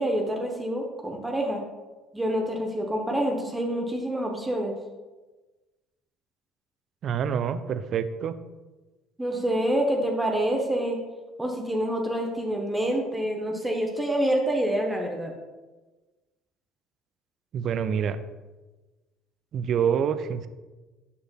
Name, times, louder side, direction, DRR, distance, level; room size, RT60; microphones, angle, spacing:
voice 1, 0.0-1.6 2.1-4.7 9.2-11.0 11.4-15.3, right 1 dB, 10° right, 1 dB, 1.0 m, -27 dB
voice 2, 7.0-8.4 17.5-18.2 19.5-20.5, right 7 dB, 45° right, 12 dB, 0.4 m, -26 dB
8.6 x 6.3 x 2.2 m, 1.2 s
figure-of-eight pair, 55°, 0 cm